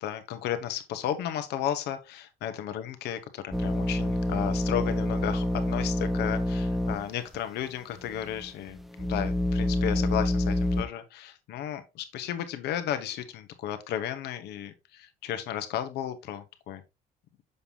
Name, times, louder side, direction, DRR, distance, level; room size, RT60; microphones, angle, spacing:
voice 1, 0.0-16.8, left 10 dB, 80° left, 1.1 m, -34 dB
sound 1, 3.5-7.1 7.3-7.4 8.1-10.8, left 1 dB, ahead, 0.8 m, -27 dB
6.8 x 5.5 x 2.9 m
cardioid pair, 110°, 17 cm